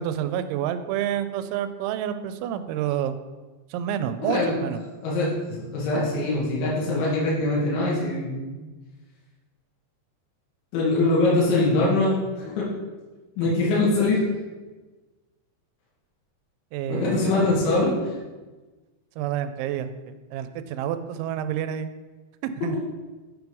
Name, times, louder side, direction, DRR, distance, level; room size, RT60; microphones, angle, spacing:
voice 1, 0.0-3.2 3.7-4.8 13.4-13.6 16.7-17.5 19.2-21.9 22.4-22.8, right 10 dB, 90° right, 10 dB, 3.0 m, -29 dB
voice 2, 4.2-4.6 5.0-8.5 10.7-12.7 13.4-14.2 16.9-17.9, left 2 dB, 80° left, -6 dB, 4.0 m, -23 dB
9.5 x 4.7 x 5.3 m, 1.3 s
omnidirectional pair, 5.3 m